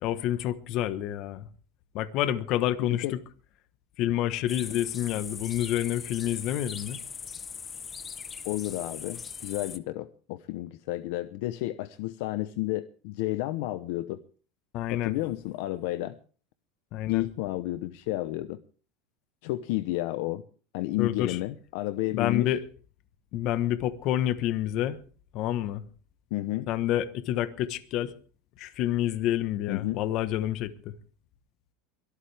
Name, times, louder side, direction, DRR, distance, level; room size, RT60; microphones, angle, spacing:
voice 1, 0.0-1.5 1.9-3.2 4.0-7.0 14.7-15.1 16.9-17.2 21.0-21.4 22.1-22.6 23.3-25.0 25.3-25.8 26.7-28.1 28.6-30.7, left 12 dB, 45° left, 1.2 m, -28 dB
voice 2, 2.8-3.1 4.7-4.8 8.4-14.2 14.9-16.2 17.0-18.6 19.4-20.4 20.7-22.5 26.3-26.7 29.7-30.0, left 16 dB, 60° left, 0.8 m, -31 dB
sound 1, 4.5-9.8, left 6 dB, 20° left, 0.8 m, -40 dB
23.5 x 13.0 x 3.5 m
supercardioid pair, 155°, 0 cm